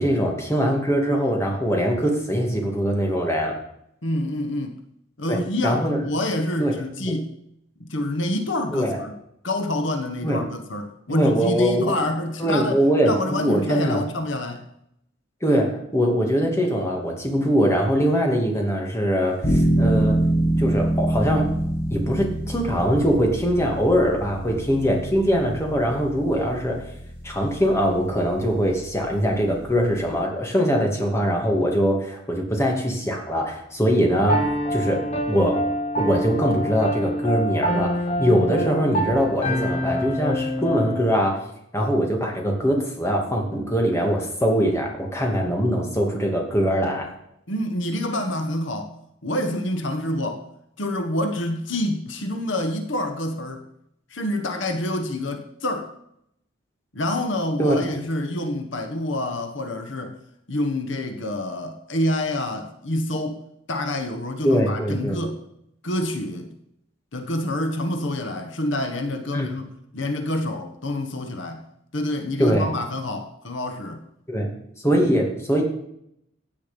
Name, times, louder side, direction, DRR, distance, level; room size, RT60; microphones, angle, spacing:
voice 1, 0.0-3.6 5.3-6.0 6.6-7.2 8.7-9.0 10.2-10.4 11.1-12.0 12.4-14.0 15.4-20.2 20.6-21.5 21.9-26.9 27.2-34.5 34.7-35.0 35.3-35.6 36.0-37.9 38.2-41.4 41.7-47.1 57.6-57.8 64.4-65.2 69.3-69.5 72.4-72.7 74.3-74.5 74.8-75.7, equal, 15° left, 1 dB, 2.5 m, -22 dB
voice 2, 4.0-4.8 5.2-7.3 7.8-9.1 9.4-14.7 47.5-48.9 49.2-50.4 50.8-53.6 54.1-55.9 56.9-60.2 60.5-63.4 63.7-65.4 65.8-66.5 67.1-71.6 71.9-74.0 74.9-75.2, left 1 dB, 70° left, 6 dB, 1.4 m, -27 dB
sound 1, 19.4-30.2, right 1 dB, 55° left, 5.7 m, -26 dB
Piano, 34.3-41.1, equal, 35° left, 1.3 m, -26 dB
16.0 x 8.7 x 5.3 m, 0.76 s
head